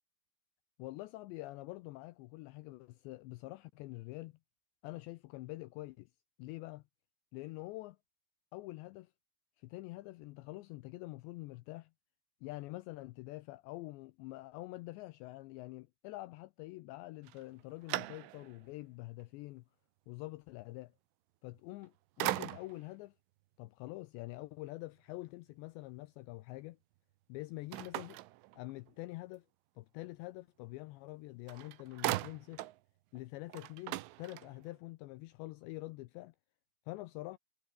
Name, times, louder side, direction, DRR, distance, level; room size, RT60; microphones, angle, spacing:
voice 1, 0.8-4.4 4.8-6.1 6.4-6.8 7.3-8.0 8.5-9.1 9.6-11.9 12.4-19.6 20.1-20.9 21.4-23.1 23.6-26.8 27.3-28.2 28.6-29.5 29.8-32.7 33.1-36.4 36.9-37.4, left 20 dB, 85° left, 2.6 m, -46 dB
sound 1, 17.2-18.7 19.2-19.3 21.6-21.9 22.2-22.9 27.7-29.0 31.1-31.2 31.5-32.8 33.2-33.3 33.5-34.8, right 18 dB, 85° right, 3.5 m, -39 dB
omnidirectional pair, 5.7 m